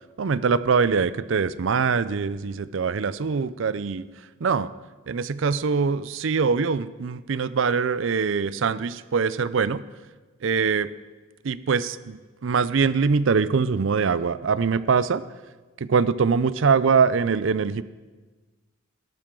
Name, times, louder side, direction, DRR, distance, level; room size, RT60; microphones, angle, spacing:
voice 1, 0.2-4.1 4.4-4.7 5.1-9.8 10.4-10.9 11.4-15.2 15.8-17.8, right 5 dB, 65° right, 16 dB, 0.5 m, -23 dB
17.0 x 12.0 x 3.8 m, 1.3 s
head